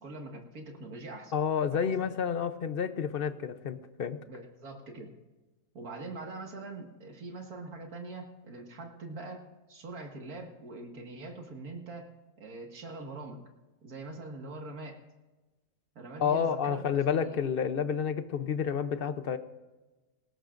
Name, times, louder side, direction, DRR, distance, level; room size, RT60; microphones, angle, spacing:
voice 1, 0.0-1.3 1.7-2.1 4.3-5.1 5.7-9.4 9.7-12.1 12.4-13.4 13.8-15.0 16.0-17.4, right 3 dB, 70° right, 2 dB, 2.3 m, -43 dB
voice 2, 1.3-4.2 16.2-19.4, left 7 dB, 50° left, 11 dB, 0.7 m, -30 dB
18.5 x 18.0 x 2.6 m, 1.2 s
omnidirectional pair, 1.6 m